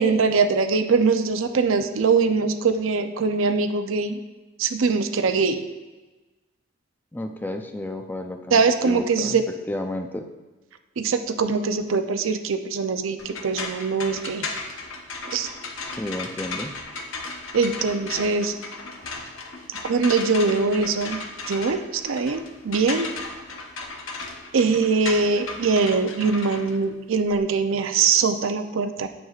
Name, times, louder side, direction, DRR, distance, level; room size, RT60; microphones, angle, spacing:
voice 1, 0.0-4.2 4.6-5.6 8.5-9.4 11.0-14.5 15.3-15.5 17.5-18.5 19.7-23.1 24.5-29.1, right 4 dB, 85° right, 8 dB, 0.5 m, -22 dB
voice 2, 7.1-9.4 9.7-10.3 15.9-16.8, left 1 dB, 10° left, 5 dB, 0.4 m, -32 dB
sound 1, 13.2-27.4, left 3 dB, 85° left, 0.9 m, -35 dB
9.2 x 7.4 x 2.4 m, 1.2 s
head